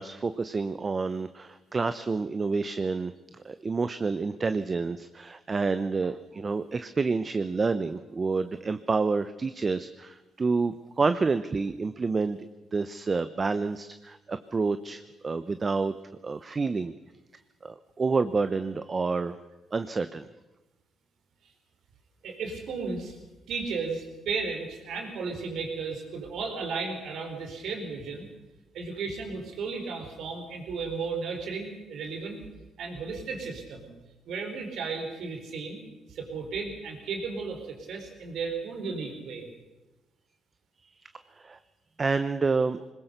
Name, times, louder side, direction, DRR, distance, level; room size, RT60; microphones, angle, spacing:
voice 1, 0.0-3.1 3.4-12.4 12.7-15.9 16.2-16.9 17.6-19.4 19.7-20.3 41.4-41.6 42.0-42.8, right 4 dB, 30° right, 12 dB, 0.8 m, -28 dB
voice 2, 22.2-23.2 23.5-28.3 28.7-32.4 32.8-33.9 34.3-35.8 36.1-39.5, right 4 dB, 70° right, 4 dB, 4.6 m, -34 dB
21.0 x 20.5 x 6.7 m, 1.1 s
cardioid pair, 90°, 0 cm